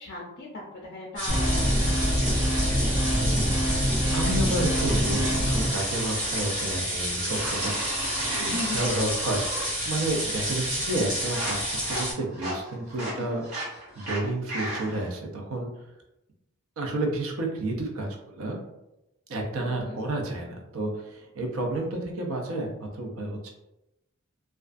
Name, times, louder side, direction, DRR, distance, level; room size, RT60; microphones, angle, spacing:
voice 1, 0.0-2.5 8.4-8.9 9.7-10.1 13.0-13.4 19.6-20.0, left 2 dB, 45° left, -3 dB, 0.4 m, -38 dB
sound 1, 1.2-12.1, equal, 40° right, 1.2 m, -30 dB
sound 2, 1.3-5.7, equal, 15° right, 0.7 m, -25 dB
voice 2, 3.0-7.8 8.2-11.6 11.9-13.4 14.0-15.7 16.8-18.6 19.3-23.5, right 2 dB, 70° right, 1 dB, 0.5 m, -31 dB
sound 3, 4.7-6.8 7.3-9.7 10.0-10.5 10.8-15.1, right 1 dB, 90° right, 1.1 m, -37 dB
2.3 x 2.2 x 2.4 m, 0.90 s
head